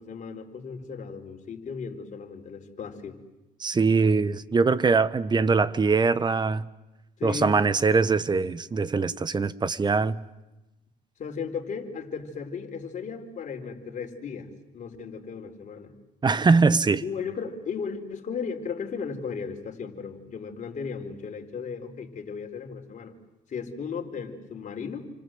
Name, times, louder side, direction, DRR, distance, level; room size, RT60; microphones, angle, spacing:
voice 1, 0.0-3.2 7.2-7.6 11.2-15.9 17.0-23.1 23.5-25.1, left 6 dB, 45° left, 4.5 m, -36 dB
voice 2, 3.6-6.7 7.2-10.2 16.2-17.0, right 4 dB, 25° right, 1.3 m, -22 dB
29.5 x 26.0 x 7.9 m
cardioid pair, 110°, 17 cm